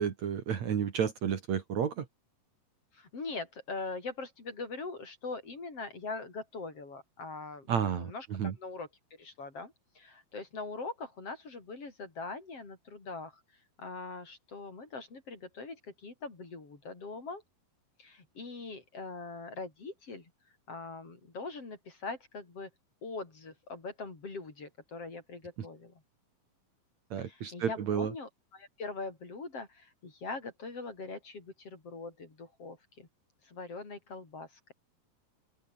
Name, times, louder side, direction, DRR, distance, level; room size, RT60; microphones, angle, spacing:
voice 1, 0.0-2.1 7.7-8.5 27.1-28.1, right 8 dB, 55° right, 2.9 m, -31 dB
voice 2, 2.9-13.4 13.8-17.4 18.0-20.3 20.7-22.7 23.0-26.0 27.2-33.1 33.4-34.7, left 3 dB, 40° left, 5.7 m, -42 dB
open air
omnidirectional pair, 4.2 m